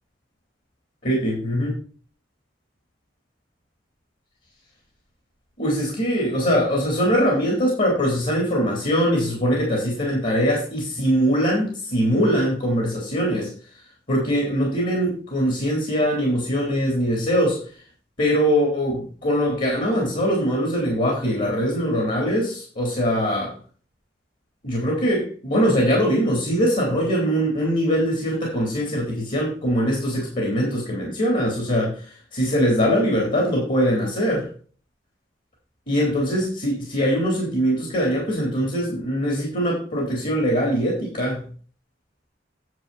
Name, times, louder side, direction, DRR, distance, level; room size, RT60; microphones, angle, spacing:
voice 1, 1.0-1.7 5.6-13.5 14.1-17.6 18.2-23.5 24.6-34.5 35.9-41.5, equal, 50° left, -1 dB, 3.4 m, -22 dB
10.5 x 7.3 x 4.2 m, 0.41 s
head